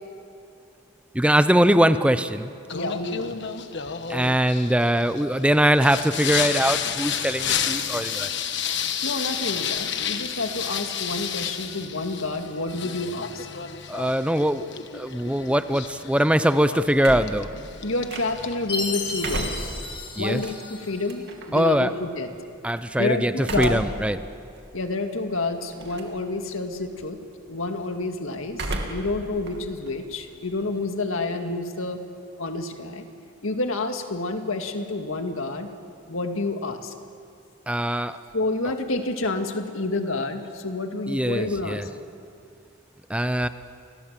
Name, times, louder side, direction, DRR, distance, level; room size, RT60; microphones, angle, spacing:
voice 1, 1.1-2.5 4.1-8.3 13.9-14.7 14.9-17.5 20.2-20.5 21.5-21.9 22.6-24.2 37.7-38.2 41.1-41.9 43.1-43.5, right 1 dB, 5° right, 12 dB, 0.6 m, -22 dB
voice 2, 2.7-3.4 9.0-13.5 17.8-19.7 20.2-22.3 23.0-23.9 24.7-27.2 27.5-32.0 32.4-33.1 33.4-35.7 36.1-36.9 38.3-41.9, left 2 dB, 75° left, 5 dB, 2.0 m, -29 dB
Singing, 2.7-19.6, left 8 dB, 55° left, 1.3 m, -31 dB
sound 1, 17.0-18.6 19.0-21.6 23.4-24.1 24.6-24.7 25.7-26.2 26.5-26.9 28.5-29.2 29.5-30.9, right 2 dB, 50° right, 2.6 m, -33 dB
Chime, 18.7-21.1, left 3 dB, 25° left, 3.7 m, -33 dB
29.5 x 21.5 x 7.5 m, 2.4 s
head